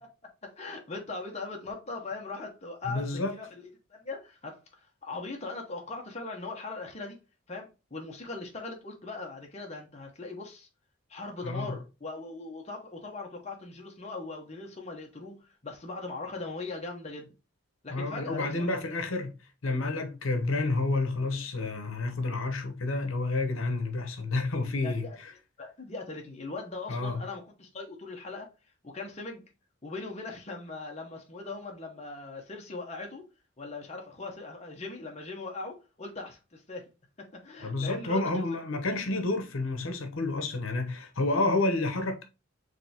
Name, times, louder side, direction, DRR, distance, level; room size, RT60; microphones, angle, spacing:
voice 1, 0.4-3.6 3.9-7.2 7.5-10.7 11.1-17.3 17.8-18.9 24.8-25.2 25.6-28.5 28.8-29.4 29.8-33.2 33.6-36.8 37.2-38.4, left 3 dB, 30° left, 0.9 m, -40 dB
voice 2, 2.8-3.3 11.4-11.7 17.9-19.4 19.6-25.3 26.9-27.2 37.6-42.2, left 2 dB, 75° left, 0.9 m, -30 dB
5.0 x 3.3 x 2.8 m
head